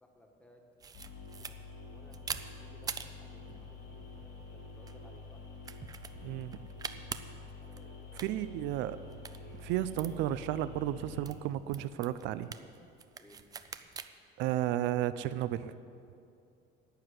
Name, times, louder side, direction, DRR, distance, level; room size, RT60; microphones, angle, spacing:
voice 1, 0.0-0.6 1.4-1.6 1.8-5.4 7.6-8.5 13.2-13.4, left 1 dB, 5° left, 1 dB, 1.4 m, -60 dB
sound 1, 0.8-14.1, right 6 dB, 20° right, 0.4 m, -47 dB
sound 2, 0.9-11.3, left 3 dB, 90° left, 4.1 m, -48 dB
voice 2, 6.2-6.6 8.2-9.0 9.6-12.5 14.4-15.7, right 13 dB, 70° right, 14 dB, 0.5 m, -33 dB
11.5 x 7.8 x 9.7 m, 2.5 s
cardioid pair, 165°, 20 cm